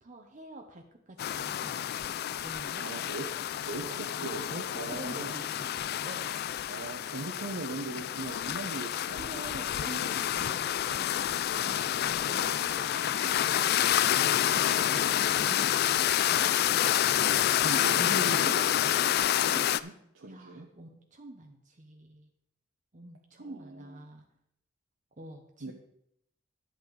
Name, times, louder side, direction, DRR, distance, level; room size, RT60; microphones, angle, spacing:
voice 1, 0.0-1.8 2.4-2.9 3.8-3.9 4.2-4.3 4.9-5.7 6.0-6.3 9.1-16.1 20.3-22.3 22.9-24.2 25.2-25.7, right 1 dB, 40° right, 3 dB, 0.9 m, -47 dB
sound 1, 1.2-19.8, left 11 dB, 55° left, 0.3 m, -28 dB
voice 2, 2.8-3.3 3.6-5.3 6.7-9.6 17.1-20.7 23.4-23.9 25.6-25.7, right 2 dB, 85° right, 1 dB, 1.0 m, -40 dB
11.0 x 8.1 x 4.0 m, 0.76 s
head